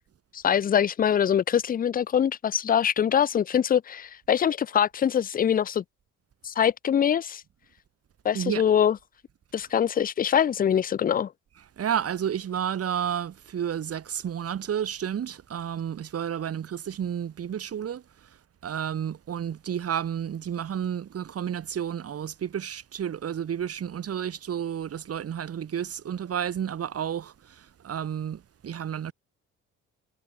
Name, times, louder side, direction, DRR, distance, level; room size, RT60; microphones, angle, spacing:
voice 1, 0.3-5.8 6.4-7.4 8.2-9.0 9.5-11.3, left 9 dB, 30° left, 0.4 m, -23 dB
voice 2, 11.8-18.0 18.6-29.1, right 9 dB, 50° right, 1.8 m, -31 dB
cardioid pair, 90°, 30 cm